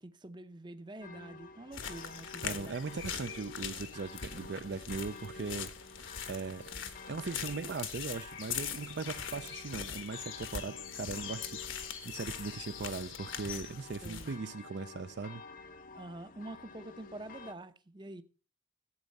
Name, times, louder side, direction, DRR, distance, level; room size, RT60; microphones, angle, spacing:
voice 1, 0.0-2.8 7.7-7.8 14.0-14.3 15.9-18.2, right 1 dB, 20° right, 0.7 m, -46 dB
sound 1, 1.0-17.5, left 3 dB, 40° left, 0.7 m, -51 dB
sound 2, 1.7-14.4, left 7 dB, 75° left, 1.4 m, -42 dB
voice 2, 2.4-5.7 6.3-6.7 7.1-15.4, right 4 dB, 55° right, 0.5 m, -39 dB
12.5 x 8.2 x 5.4 m
head